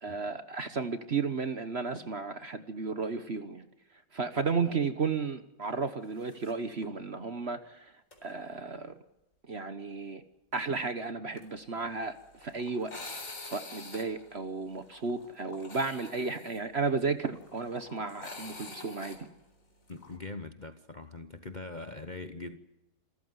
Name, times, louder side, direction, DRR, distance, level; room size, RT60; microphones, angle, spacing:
voice 1, 0.0-3.7 4.1-7.9 8.2-8.9 9.5-10.2 10.5-12.2 12.4-12.9 13.2-19.3, right 4 dB, 40° right, 1.2 m, -33 dB
sound 1, 6.2-6.5 6.8-6.9 8.1-8.3 11.4-20.2, left 3 dB, 45° left, 4.3 m, -47 dB
voice 2, 19.9-22.6, left 3 dB, 30° left, 1.0 m, -42 dB
27.0 x 14.5 x 9.5 m
omnidirectional pair, 1.9 m